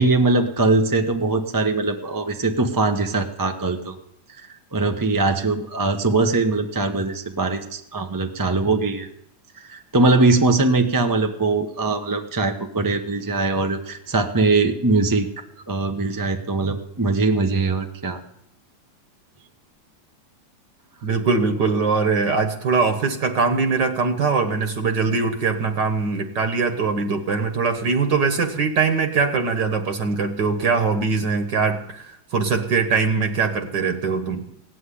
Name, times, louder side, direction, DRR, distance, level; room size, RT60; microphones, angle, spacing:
voice 1, 0.0-4.0 4.4-9.1 9.5-15.3 15.7-18.2, right 3 dB, 20° right, 5 dB, 0.6 m, -21 dB
voice 2, 21.0-34.4, right 4 dB, 65° right, 7 dB, 1.8 m, -22 dB
17.0 x 7.9 x 9.9 m, 0.76 s
omnidirectional pair, 2.1 m